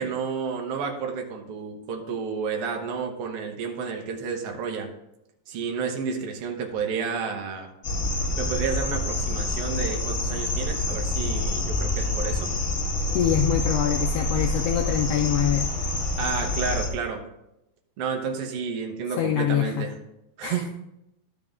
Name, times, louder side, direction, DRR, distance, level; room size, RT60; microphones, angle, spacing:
voice 1, 0.0-4.9 5.5-7.7 8.4-12.5 16.2-17.2 18.0-19.9 20.4-20.7, right 5 dB, 65° right, 2 dB, 1.8 m, -31 dB
sound 1, 7.8-16.9, left 2 dB, 50° left, 0.9 m, -27 dB
voice 2, 13.1-15.7 19.2-19.8 20.4-20.7, left 9 dB, 80° left, 4 dB, 1.4 m, -24 dB
12.5 x 5.2 x 3.6 m, 0.86 s
omnidirectional pair, 3.3 m